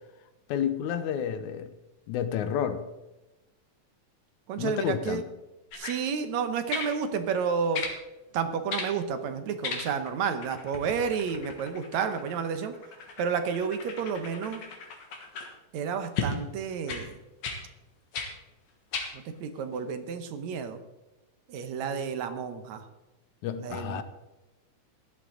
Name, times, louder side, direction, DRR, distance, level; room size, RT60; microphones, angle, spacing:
voice 1, 0.5-1.7 2.1-2.8 4.6-5.2 23.4-24.0, left 8 dB, 80° left, 2.2 m, -30 dB
voice 2, 4.5-5.2 5.7-7.8 8.3-12.8 13.2-14.6 15.7-17.2 19.1-20.8 21.5-22.9 23.6-24.0, right 6 dB, 70° right, 2.2 m, -31 dB
sound 1, 5.7-6.0 6.7-7.0 7.7-8.0 8.7-8.9 9.6-10.1 10.4-15.5 16.2-16.4 16.9-17.1 17.4-17.6 18.1-18.3 18.9-19.1 19.7-19.8, left 4 dB, 65° left, 2.8 m, -36 dB
15.5 x 11.0 x 3.8 m
omnidirectional pair, 3.4 m